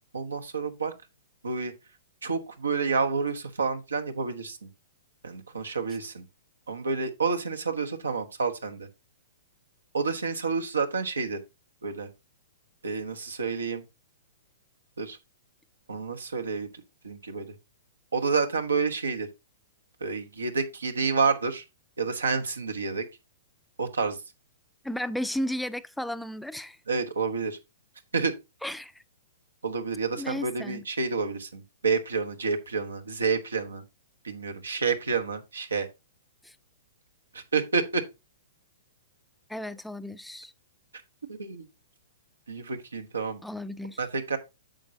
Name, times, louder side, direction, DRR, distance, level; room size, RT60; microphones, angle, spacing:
voice 1, 0.1-0.9 1.4-1.7 2.2-4.7 5.2-6.2 6.7-8.9 9.9-11.4 11.8-12.1 12.8-13.8 15.0-15.2 15.9-16.7 17.0-17.5 18.1-19.3 20.0-21.6 22.0-23.1 23.8-24.2 26.9-27.6 28.1-28.3 29.6-33.8 34.2-35.9 37.3-38.0 41.3-41.7 42.5-43.4 44.0-44.4, right 4 dB, 90° right, 1.1 m, -29 dB
voice 2, 24.8-26.8 28.6-29.0 30.2-30.8 36.4-36.6 39.5-40.5 43.4-44.0, left 1 dB, ahead, 0.4 m, -34 dB
8.9 x 6.5 x 2.8 m
hypercardioid pair, 120°, 0 cm